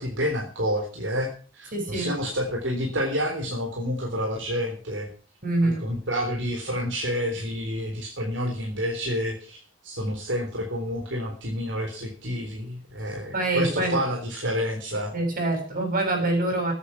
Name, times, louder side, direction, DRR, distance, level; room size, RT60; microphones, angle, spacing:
voice 1, 0.0-5.1 5.6-15.1, equal, 75° right, 1 dB, 3.6 m, -29 dB
voice 2, 1.7-2.1 5.4-5.8 13.3-14.0 15.1-16.7, right 2 dB, 45° right, 3 dB, 7.5 m, -25 dB
14.5 x 9.7 x 7.0 m, 0.39 s
head